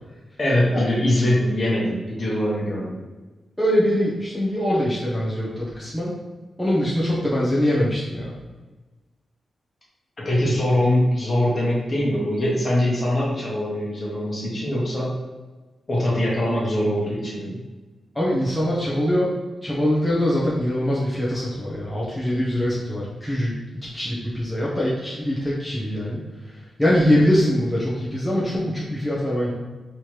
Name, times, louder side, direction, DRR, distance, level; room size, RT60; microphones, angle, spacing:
voice 1, 0.4-3.0 10.2-15.2 15.9-17.6, left 1 dB, 30° left, -5 dB, 1.3 m, -22 dB
voice 2, 3.6-6.1 6.6-8.3 18.1-19.3 19.6-23.5 23.9-26.2 26.8-29.5, equal, ahead, -8 dB, 0.9 m, -23 dB
3.4 x 3.1 x 4.5 m, 1.2 s
wide cardioid pair, 150°, 0 cm